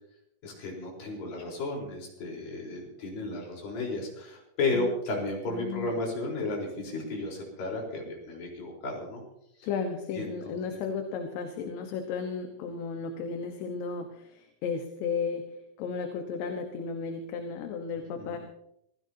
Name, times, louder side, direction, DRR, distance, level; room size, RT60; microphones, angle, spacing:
voice 1, 0.4-9.2 9.6-9.7 10.2-10.6 18.1-18.4, left 2 dB, 55° left, -1 dB, 5.7 m, -33 dB
voice 2, 5.5-6.0 9.6-15.5 15.8-18.4, left 5 dB, 75° left, 4 dB, 3.3 m, -34 dB
26.5 x 16.0 x 2.8 m, 0.77 s
omnidirectional pair, 5.1 m